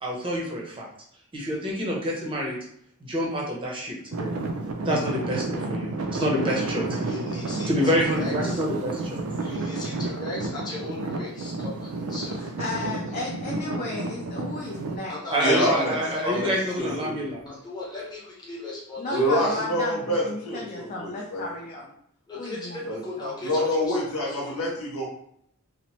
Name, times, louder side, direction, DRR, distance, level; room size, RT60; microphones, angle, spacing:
voice 1, 0.0-0.9 1.3-2.6 3.0-4.3 4.8-6.9 7.7-9.2 15.3-17.5, equal, 25° right, -4 dB, 0.6 m, -27 dB
Traffic noise roadway noise / Engine, 4.1-15.0, right 2 dB, 70° right, 0.4 m, -31 dB
voice 2, 6.9-8.6 9.4-12.5 15.1-16.8 17.4-19.6 22.3-24.0 24.3-24.5, left 2 dB, 20° left, -6 dB, 0.8 m, -38 dB
voice 3, 12.4-15.2 15.6-16.6 19.0-21.9 22.4-22.9 23.2-23.3 24.4-24.6, left 2 dB, 35° left, -3 dB, 0.4 m, -34 dB
voice 4, 15.4-16.0 16.2-16.5 16.8-17.1 19.1-21.4 22.9-23.0 23.4-25.0, equal, 80° left, -3 dB, 1.0 m, -26 dB
2.8 x 2.0 x 3.0 m, 0.70 s
head